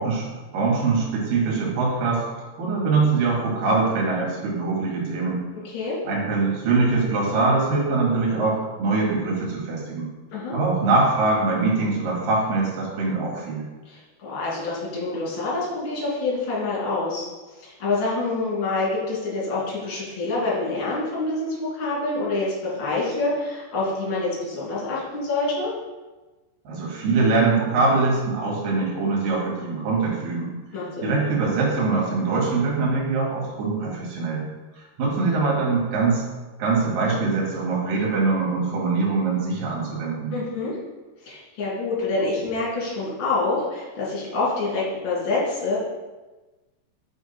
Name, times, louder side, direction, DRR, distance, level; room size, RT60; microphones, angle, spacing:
voice 1, 0.0-5.4 6.0-10.1 10.5-13.6 26.6-30.5 31.0-34.4 34.7-36.3 36.6-40.3, right 3 dB, 55° right, -4 dB, 3.0 m, -23 dB
voice 2, 5.6-6.0 10.3-10.5 13.8-17.3 17.6-25.7 30.7-31.1 40.3-40.8 41.2-45.8, left 3 dB, 35° left, -7 dB, 2.5 m, -26 dB
6.6 x 5.9 x 4.3 m, 1.2 s
omnidirectional pair, 5.8 m